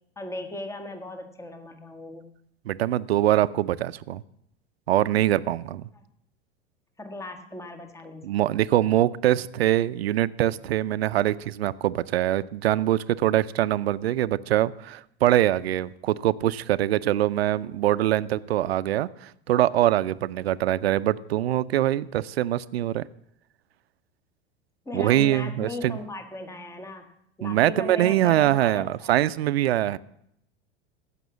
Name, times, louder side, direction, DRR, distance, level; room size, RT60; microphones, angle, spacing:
voice 1, 0.2-2.3 7.0-8.2 24.8-27.1 27.4-29.1, left 2 dB, 10° left, 7 dB, 1.5 m, -37 dB
voice 2, 2.7-4.2 4.9-5.9 8.2-23.0 24.9-26.0 27.4-30.0, right 13 dB, 75° right, 17 dB, 0.6 m, -23 dB
15.0 x 6.0 x 7.2 m, 0.74 s
hypercardioid pair, 95°, 31 cm